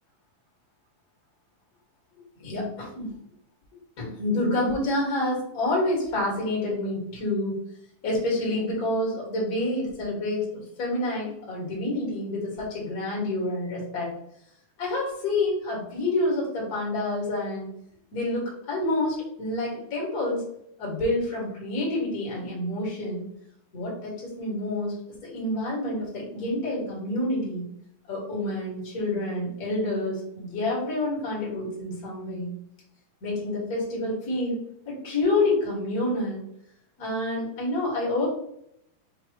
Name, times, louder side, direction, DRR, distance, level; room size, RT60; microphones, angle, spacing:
voice 1, 2.4-3.2 4.0-7.6 8.0-14.1 14.8-17.7 18.1-20.4 20.8-23.3 23.7-27.7 28.1-32.5 33.2-34.6 34.8-36.4 37.0-38.2, left 2 dB, 35° left, -5 dB, 1.7 m, -28 dB
5.4 x 3.3 x 3.0 m, 0.74 s
omnidirectional pair, 4.3 m